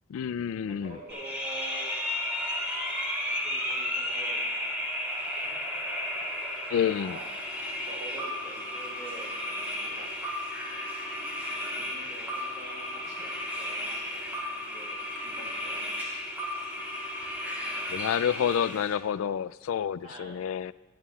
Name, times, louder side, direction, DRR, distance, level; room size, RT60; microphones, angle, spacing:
voice 1, 0.1-1.0 6.7-7.2 17.9-20.7, left 8 dB, 80° left, 18 dB, 0.3 m, -29 dB
voice 2, 0.6-2.0 3.4-5.5 5.8-5.9 7.0-7.3 7.7-9.3 9.8-10.1 11.6-15.9 20.0-20.5, right 1 dB, 30° right, -3 dB, 4.3 m, -46 dB
sound 1, 1.1-18.9, left 1 dB, 10° right, 2.7 m, -34 dB
21.5 x 13.0 x 2.3 m, 1.2 s
head